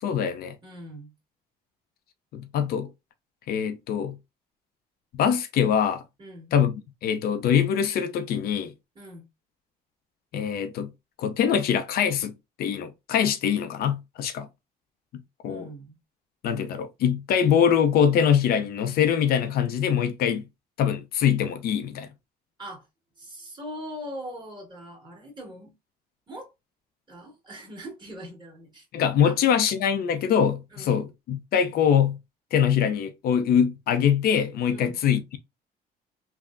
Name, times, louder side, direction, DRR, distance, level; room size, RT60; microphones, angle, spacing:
voice 1, 0.0-0.6 2.3-2.9 3.5-4.2 5.1-6.0 6.5-8.7 10.3-10.9 11.2-14.5 15.1-15.7 16.4-20.4 20.8-22.1 28.9-32.2 32.5-35.4, left 8 dB, 65° left, 0.5 m, -23 dB
voice 2, 0.6-1.1 6.2-6.5 8.9-9.2 15.5-15.9 22.6-22.9 23.2-25.7 26.3-26.5 27.1-28.8 29.2-29.4 30.7-31.0 34.7-35.0, equal, 25° right, 1.7 m, -41 dB
3.4 x 2.0 x 2.5 m
cardioid pair, 110°, 17 cm